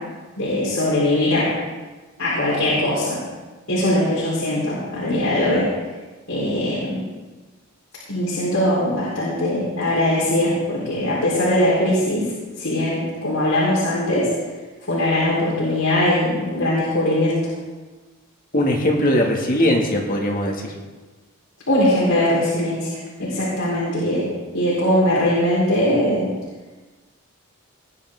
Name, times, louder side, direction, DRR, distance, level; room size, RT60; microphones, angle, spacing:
voice 1, 0.4-1.5 2.2-3.2 3.7-5.7 6.3-7.0 8.1-12.2 12.6-14.3 14.9-17.4 21.7-24.3 24.5-26.3, left 1 dB, 75° left, -8 dB, 4.4 m, -21 dB
voice 2, 18.5-20.7, left 1 dB, 40° left, 0 dB, 2.2 m, -20 dB
19.5 x 10.5 x 3.8 m, 1.3 s
head